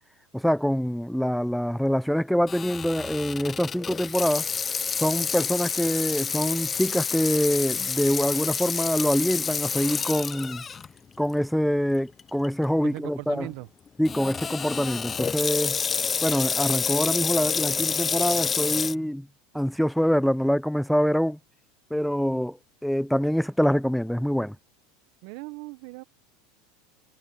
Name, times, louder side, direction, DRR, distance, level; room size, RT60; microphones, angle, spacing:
voice 1, 0.3-4.5 5.0-10.6 11.2-13.5 14.0-15.8 16.2-19.3 19.5-21.4 21.9-22.6 22.8-24.6, equal, ahead, 0.8 m, -25 dB
Water tap faucet / Sink (filling or washing), 2.5-10.9 11.3-11.4 12.2-12.5 14.0-18.9, left 6 dB, 25° left, 1.1 m, -29 dB
voice 2, 12.8-13.7 25.2-26.0, right 25 dB, 65° right, 1.3 m, -38 dB
hypercardioid pair, 95°, 0 cm